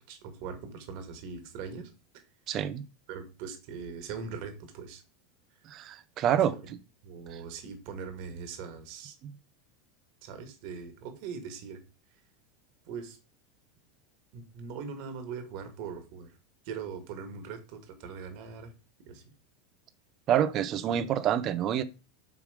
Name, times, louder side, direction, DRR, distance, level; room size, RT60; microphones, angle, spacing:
voice 1, 0.1-1.9 3.1-5.0 6.3-6.7 7.0-9.1 10.2-11.8 12.9-13.2 14.3-16.3 16.7-18.7 19.1-19.2, right 6 dB, 60° right, 1.9 m, -41 dB
voice 2, 2.5-2.8 5.7-6.5 20.3-21.8, right 10 dB, 40° right, 0.8 m, -27 dB
8.5 x 3.5 x 5.1 m
supercardioid pair, 135°, 0 cm